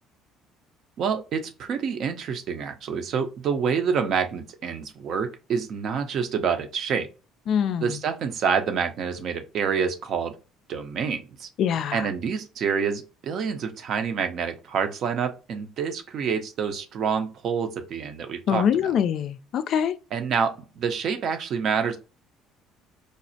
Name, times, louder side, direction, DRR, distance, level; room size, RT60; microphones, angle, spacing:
voice 1, 1.0-7.1 7.8-10.4 10.7-11.5 11.9-18.6 20.1-22.0, right 6 dB, 55° right, 0.6 m, -27 dB
voice 2, 7.5-8.0 11.6-12.1 18.5-19.9, left 8 dB, 55° left, 0.3 m, -24 dB
5.0 x 2.0 x 2.7 m
cardioid pair, 100°, 0 cm